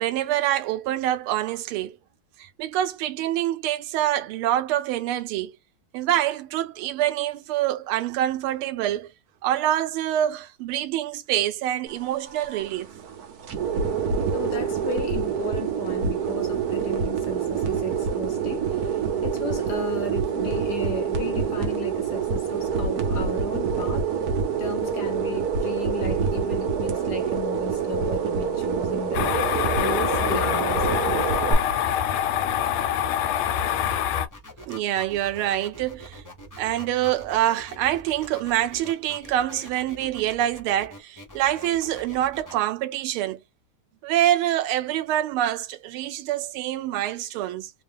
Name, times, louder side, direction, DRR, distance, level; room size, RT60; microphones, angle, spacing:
voice 1, 0.0-2.0 2.4-5.6 5.9-9.1 9.4-12.9 34.7-36.2 36.6-43.4 44.0-47.7, right 12 dB, 85° right, 1.5 m, -26 dB
sound 1, 11.9-31.5, right 6 dB, 60° right, 1.1 m, -26 dB
voice 2, 14.3-24.3 24.6-31.2, left 4 dB, 70° left, 1.0 m, -35 dB
sound 2, 29.1-34.3, left 9 dB, 85° left, 1.5 m, -25 dB
sound 3, 34.3-42.5, left 2 dB, 20° left, 0.5 m, -44 dB
3.5 x 2.3 x 3.5 m
omnidirectional pair, 2.3 m